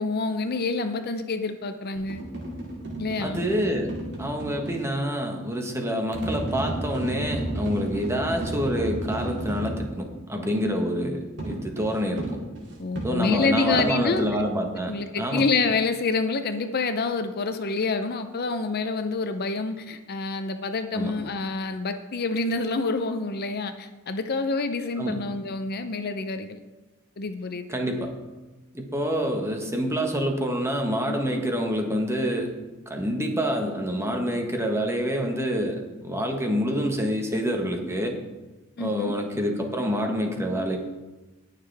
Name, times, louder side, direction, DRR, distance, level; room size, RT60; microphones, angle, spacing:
voice 1, 0.0-2.2 3.0-3.4 10.5-10.8 12.8-14.3 14.9-26.6 27.2-27.7 38.8-39.1, left 3 dB, 50° left, 8 dB, 0.6 m, -27 dB
sound 1, 1.9-4.8 6.1-9.9 11.4-14.4, right 1 dB, 60° right, 2.4 m, -33 dB
voice 2, 3.2-3.9 4.2-12.4 13.0-15.4 20.9-21.1 25.0-25.2 27.7-28.1 28.7-32.5 32.9-38.2 38.8-40.8, equal, 15° right, 2 dB, 1.4 m, -27 dB
19.0 x 6.7 x 3.4 m, 1.1 s
head